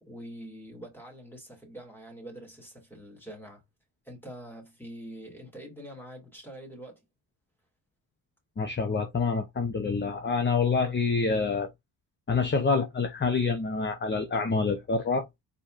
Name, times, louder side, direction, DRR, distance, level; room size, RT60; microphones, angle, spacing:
voice 1, 0.0-3.7 4.0-7.0, right 1 dB, 5° left, 2.5 m, -45 dB
voice 2, 8.6-11.7 12.3-15.3, left 4 dB, 25° left, 0.7 m, -27 dB
4.8 x 4.2 x 2.5 m
wide cardioid pair, 150°, 46 cm